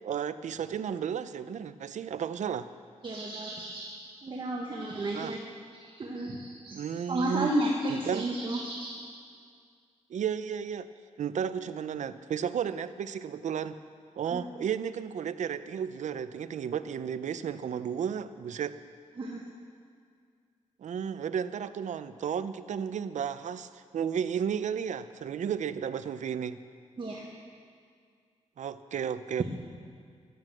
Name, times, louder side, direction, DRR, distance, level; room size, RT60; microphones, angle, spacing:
voice 1, 0.0-2.7 5.1-5.3 6.7-7.5 7.9-8.2 10.1-10.9 11.2-13.8 14.2-18.8 20.8-26.6 28.6-29.4, right 8 dB, 75° right, 12 dB, 0.6 m, -33 dB
voice 2, 3.0-3.9 4.2-5.4 5.7-9.0 14.3-14.4 19.2-19.4 27.0-27.3, right 1 dB, 40° right, -1 dB, 1.4 m, -33 dB
15.0 x 11.0 x 7.6 m, 2.1 s
wide cardioid pair, 140°, 12 cm